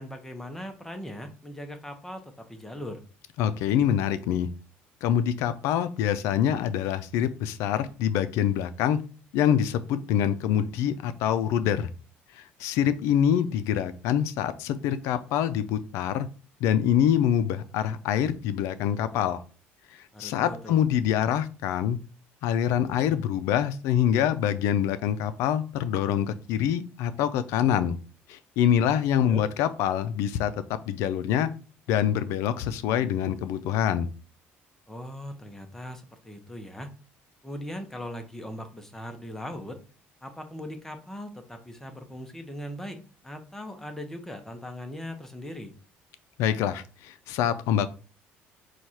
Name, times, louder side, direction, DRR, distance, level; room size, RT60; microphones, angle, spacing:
voice 1, 0.0-3.0 20.1-20.8 29.1-29.4 34.9-36.9 37.4-39.8 40.2-43.0 43.2-45.7, left 1 dB, 10° left, 5 dB, 0.8 m, -39 dB
voice 2, 3.4-4.5 5.0-9.0 9.3-11.9 12.3-16.3 16.6-19.4 19.9-22.0 22.4-28.0 28.3-30.5 30.9-31.5 31.9-34.1 46.4-47.9, left 9 dB, 80° left, 12 dB, 0.4 m, -25 dB
4.6 x 2.4 x 4.2 m, 0.37 s
cardioid pair, 110°, 5 cm